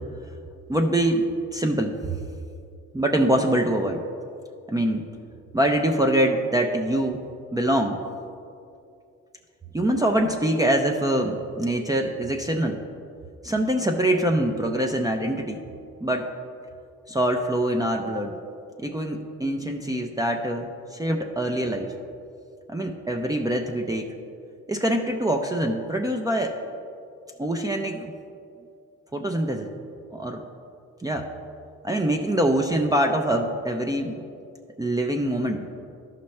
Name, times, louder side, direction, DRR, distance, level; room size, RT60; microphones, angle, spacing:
voice 1, 0.7-2.1 2.9-4.0 4.7-5.0 5.5-7.2 7.5-8.0 9.7-12.8 13.4-15.6 16.0-16.3 17.1-18.3 18.8-21.9 22.7-24.1 24.7-26.6 27.4-28.1 29.1-29.7 30.1-30.4 31.0-31.3 31.8-34.2 34.8-35.6, right 1 dB, 10° right, 3 dB, 0.5 m, -24 dB
13.0 x 5.7 x 3.2 m, 2.5 s
cardioid pair, 90°, 30 cm